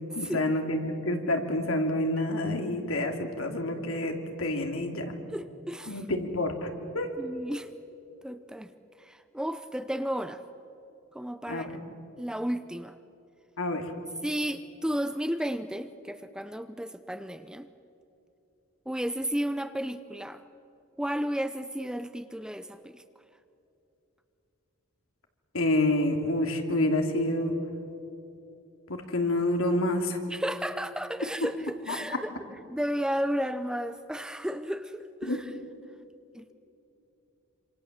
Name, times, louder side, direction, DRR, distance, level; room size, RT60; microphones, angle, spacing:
voice 1, 0.1-5.1 5.9-6.7 6.9-7.1 11.5-11.8 13.6-13.8 25.5-27.5 28.9-30.2 31.9-32.0 35.2-35.4, left 1 dB, 80° left, 4 dB, 2.8 m, -28 dB
voice 2, 5.3-6.0 7.2-7.7 8.2-8.7 9.0-10.4 11.1-11.7 12.2-13.0 14.2-17.7 18.9-20.4 21.0-23.0 30.3-32.3 32.7-35.5 36.3-36.5, equal, 5° right, 11 dB, 0.6 m, -33 dB
27.0 x 26.5 x 7.4 m, 2.8 s
head